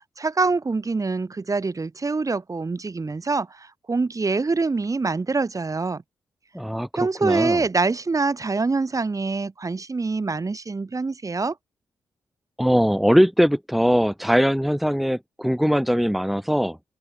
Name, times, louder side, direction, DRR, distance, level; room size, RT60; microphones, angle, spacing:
voice 1, 0.2-6.0 6.9-11.5, right 3 dB, 40° right, 6.6 m, -25 dB
voice 2, 6.5-7.6 12.6-16.8, equal, ahead, 2.2 m, -21 dB
open air
supercardioid pair, 40°, 8 cm